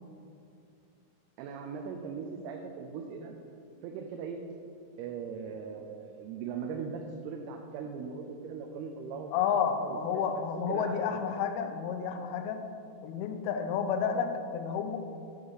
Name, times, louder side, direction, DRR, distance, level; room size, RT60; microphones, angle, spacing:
voice 1, 1.4-3.3 3.8-4.4 5.0-10.4 10.7-10.9, right 6 dB, 85° right, 2 dB, 2.6 m, -39 dB
voice 2, 9.3-12.7 13.0-15.0, left 7 dB, 80° left, 7 dB, 2.3 m, -31 dB
7.3 x 5.0 x 6.2 m, 2.6 s
omnidirectional pair, 4.6 m